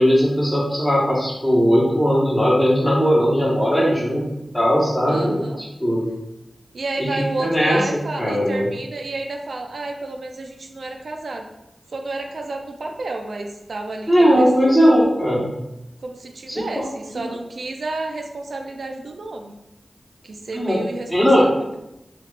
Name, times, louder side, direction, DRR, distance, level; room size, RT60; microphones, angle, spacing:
voice 1, 0.0-4.3 4.5-5.4 5.8-6.1 7.0-8.6 14.1-15.5 16.5-16.6 17.1-17.2 20.5-20.8 21.1-21.5, equal, 15° left, -5 dB, 1.3 m, -18 dB
voice 2, 5.1-5.6 6.7-11.5 11.9-15.2 16.0-19.5 20.2-21.8, right 2 dB, 80° right, 3 dB, 0.3 m, -31 dB
3.2 x 2.4 x 3.1 m, 0.86 s
wide cardioid pair, 65°, 0 cm